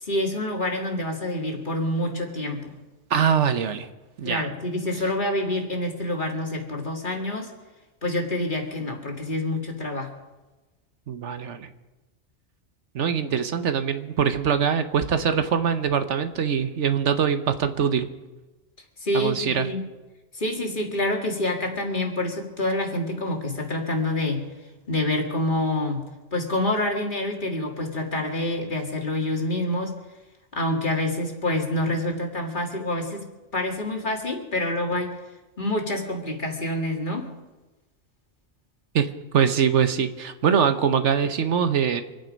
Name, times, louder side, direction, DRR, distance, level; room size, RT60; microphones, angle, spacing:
voice 1, 0.0-2.8 4.2-7.5 8.0-10.1 19.0-19.8 20.3-24.5 24.9-30.0 30.5-33.2 33.5-35.1 35.6-37.3, left 1 dB, 45° left, 1 dB, 2.2 m, -27 dB
voice 2, 3.1-3.9 4.2-4.4 11.1-11.7 12.9-18.1 19.1-19.7 38.9-42.0, right 7 dB, 75° right, 9 dB, 1.2 m, -23 dB
26.0 x 9.2 x 5.2 m, 1.1 s
omnidirectional pair, 1.2 m